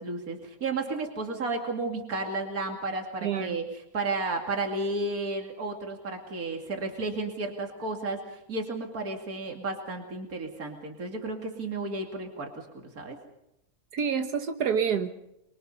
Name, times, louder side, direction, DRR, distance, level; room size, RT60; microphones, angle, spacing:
voice 1, 0.0-3.6 3.9-13.2, right 3 dB, 65° right, 2 dB, 3.0 m, -33 dB
voice 2, 3.2-3.6 13.9-15.1, right 7 dB, 80° right, 7 dB, 1.8 m, -27 dB
24.5 x 23.5 x 5.5 m, 0.84 s
omnidirectional pair, 1.6 m